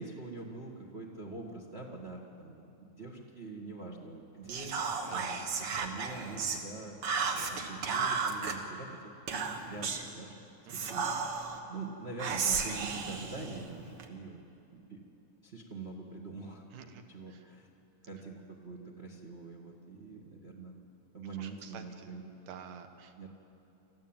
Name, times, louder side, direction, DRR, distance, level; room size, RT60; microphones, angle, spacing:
voice 1, 0.0-9.0 9.5-10.3 10.7-14.4 14.7-15.0 15.4-16.6 17.1-17.7 18.0-20.7 21.1-22.2 23.2-23.3, right 3 dB, 35° right, 1 dB, 1.0 m, -44 dB
Whispering, 4.5-6.6 7.0-8.6 9.3-10.1 10.7-11.6 12.2-14.1, right 5 dB, 50° right, 2.0 m, -34 dB
voice 2, 5.0-5.5 10.7-10.9 16.7-17.0 17.3-17.4 21.4-22.1 22.5-23.3, right 7 dB, 75° right, 7 dB, 2.8 m, -49 dB
25.0 x 15.0 x 8.9 m, 2.8 s
omnidirectional pair, 3.8 m